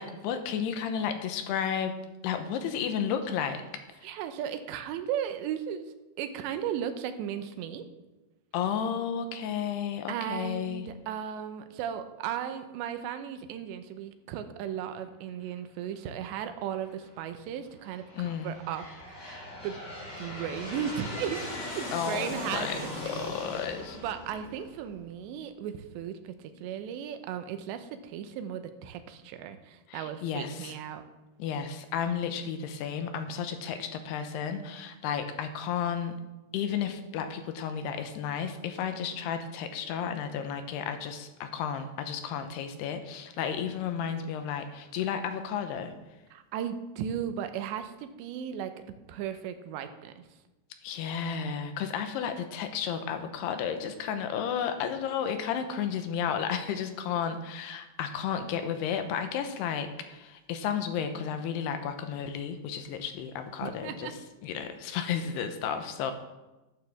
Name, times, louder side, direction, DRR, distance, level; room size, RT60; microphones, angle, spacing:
voice 1, 0.0-1.9 2.2-4.1 8.5-10.9 18.1-18.6 21.9-22.8 23.1-24.0 29.9-30.8 31.4-36.2 36.5-45.9 50.8-66.1, left 7 dB, 80° left, 8 dB, 2.7 m, -33 dB
voice 2, 4.0-7.9 10.1-19.4 19.6-19.8 20.2-23.3 24.0-31.0 46.3-50.2 63.6-64.1, right 9 dB, 90° right, 9 dB, 3.1 m, -36 dB
Aircraft, 16.4-16.9 17.6-25.2, left 1 dB, 25° left, 3.2 m, -40 dB
13.5 x 12.0 x 3.5 m, 1.1 s
omnidirectional pair, 5.0 m